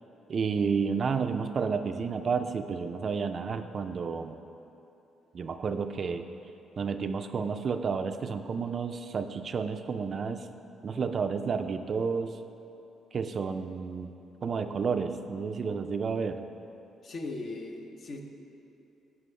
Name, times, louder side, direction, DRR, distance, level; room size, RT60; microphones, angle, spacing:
voice 1, 0.3-4.4 5.3-6.2 6.8-10.4 10.8-12.3 13.1-14.1 14.4-16.4, right 5 dB, 50° right, 8 dB, 0.3 m, -31 dB
voice 2, 17.0-18.2, left 2 dB, 55° left, 3 dB, 0.8 m, -38 dB
11.5 x 4.7 x 3.2 m, 2.8 s
supercardioid pair, 65°, 0 cm